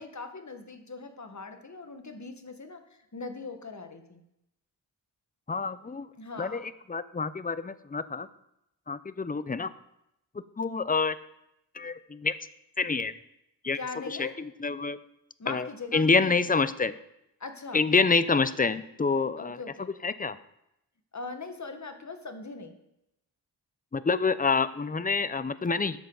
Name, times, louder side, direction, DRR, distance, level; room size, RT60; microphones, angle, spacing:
voice 1, 0.0-4.2 6.1-6.7 13.7-14.4 15.4-16.3 17.4-17.8 19.4-19.9 21.1-22.7, left 4 dB, 40° left, 6 dB, 1.6 m, -41 dB
voice 2, 5.5-6.1 6.4-8.3 8.9-9.7 10.6-11.2 11.7-12.3 12.8-13.1 13.6-13.8 14.1-15.0 15.5-16.9 17.7-19.6 20.0-20.4 23.9-26.0, left 4 dB, 20° left, 14 dB, 0.6 m, -27 dB
12.5 x 7.2 x 4.0 m, 0.83 s
cardioid pair, 45°, 44 cm